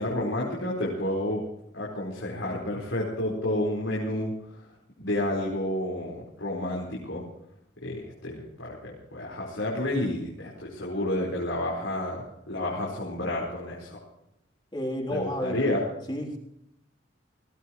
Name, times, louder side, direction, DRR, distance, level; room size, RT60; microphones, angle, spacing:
voice 1, 0.0-1.4 1.7-4.6 5.0-7.2 7.8-14.0 15.1-15.8, left 1 dB, 85° left, -5 dB, 4.7 m, -30 dB
voice 2, 14.7-15.7 16.1-16.4, equal, 25° left, -1 dB, 3.4 m, -31 dB
20.0 x 17.5 x 3.1 m, 0.79 s
head